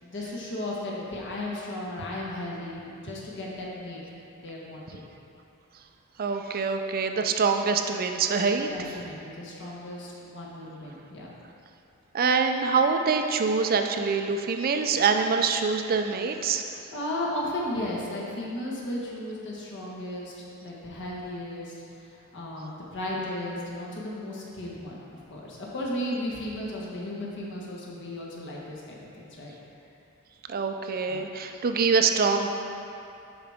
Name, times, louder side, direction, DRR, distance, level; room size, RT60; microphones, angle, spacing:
voice 1, 0.0-4.0 4.4-5.0 8.7-11.3 16.9-21.8 22.1-29.5 31.0-31.3, left 1 dB, 55° left, -4 dB, 1.4 m, -35 dB
voice 2, 6.2-8.7 12.1-16.6 30.5-32.5, right 5 dB, 45° right, 5 dB, 0.5 m, -25 dB
10.5 x 4.9 x 3.6 m, 2.7 s
head